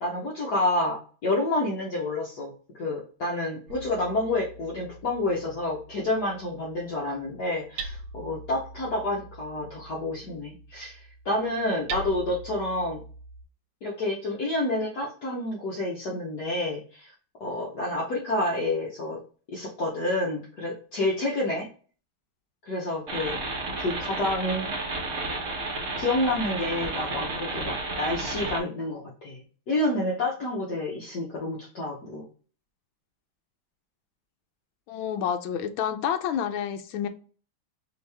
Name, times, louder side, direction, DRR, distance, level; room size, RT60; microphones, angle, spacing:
voice 1, 0.0-13.0 13.8-17.1 17.4-19.2 19.5-21.7 22.7-23.4 23.8-24.7 26.0-32.2, left 2 dB, 60° left, -3 dB, 1.2 m, -29 dB
Hammer, 3.7-13.4, right 3 dB, 90° right, 1.6 m, -43 dB
sound 1, 23.1-28.6, right 3 dB, 45° right, 1.1 m, -32 dB
voice 2, 34.9-37.1, left 8 dB, 75° left, 8 dB, 1.3 m, -29 dB
4.5 x 2.9 x 3.3 m, 0.40 s
omnidirectional pair, 2.4 m